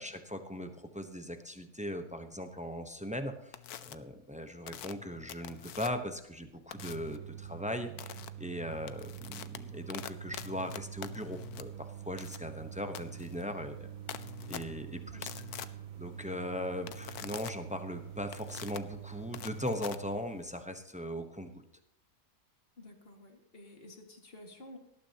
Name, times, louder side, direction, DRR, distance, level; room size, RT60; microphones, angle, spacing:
voice 1, 0.0-13.9 14.5-15.3 16.0-21.6, equal, 5° right, 6 dB, 0.7 m, -39 dB
sound 1, 3.5-3.9 4.7-6.1 6.7-7.2 8.0-8.3 8.7-20.6, left 11 dB, 70° left, 1.2 m, -45 dB
sound 2, 6.8-20.2, right 10 dB, 70° right, 1.0 m, -46 dB
voice 2, 22.8-24.8, left 1 dB, 35° left, 3 dB, 2.2 m, -52 dB
18.5 x 12.5 x 2.9 m, 0.80 s
omnidirectional pair, 1.7 m